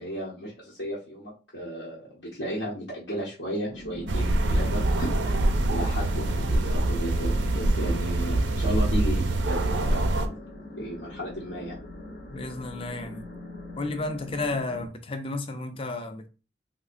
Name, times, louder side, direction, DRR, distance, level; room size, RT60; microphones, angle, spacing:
voice 1, 0.0-10.0 10.8-11.8, equal, 90° left, 1.0 m, -34 dB
sound 1, 3.7-14.9, left 2 dB, 65° left, 0.8 m, -41 dB
sound 2, 4.1-10.3, right 2 dB, 85° right, 0.5 m, -25 dB
voice 2, 12.3-13.2 13.8-16.3, left 2 dB, 30° left, 0.5 m, -32 dB
3.6 x 2.8 x 2.5 m
head